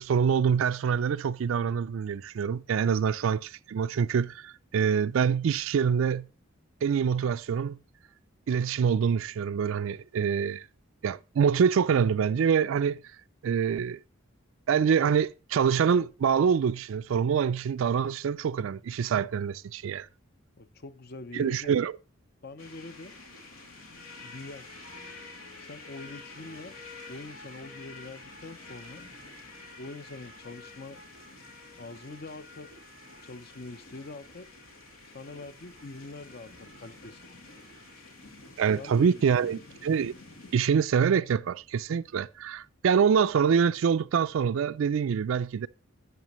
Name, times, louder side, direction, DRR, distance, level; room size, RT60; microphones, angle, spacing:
voice 1, 0.0-6.3 6.8-7.8 8.5-10.7 11.0-13.0 13.4-14.0 14.7-20.1 21.3-21.9 38.6-40.1 40.5-45.7, right 7 dB, 75° right, 0.3 m, -25 dB
voice 2, 20.6-21.8 22.4-23.1 24.2-24.7 25.6-26.8 27.1-29.0 29.8-31.0 31.8-32.7 33.2-34.5 35.1-37.7 38.7-39.6, left 3 dB, 45° left, 0.6 m, -44 dB
sound 1, 22.6-40.6, left 2 dB, 85° left, 2.5 m, -48 dB
12.5 x 7.9 x 3.1 m
head